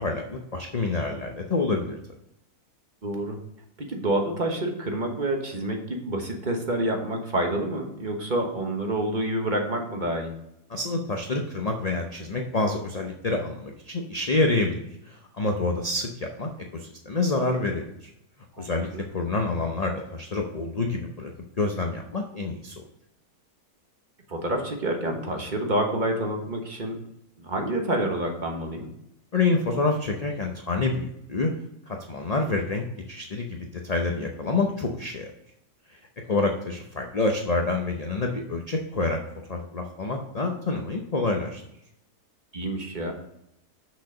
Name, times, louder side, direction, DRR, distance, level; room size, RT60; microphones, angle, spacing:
voice 1, 0.0-2.0 10.7-14.8 15.1-18.1 18.6-21.3 21.6-22.7 29.3-31.5 31.9-35.3 35.9-36.0 36.3-39.2 39.5-41.6, left 3 dB, 40° left, 2 dB, 0.6 m, -27 dB
voice 2, 3.0-3.4 3.8-10.3 18.5-19.0 24.3-27.0 27.4-28.9 42.5-43.1, right 1 dB, 30° right, 2 dB, 1.3 m, -28 dB
6.4 x 6.4 x 5.2 m, 0.79 s
omnidirectional pair, 1.7 m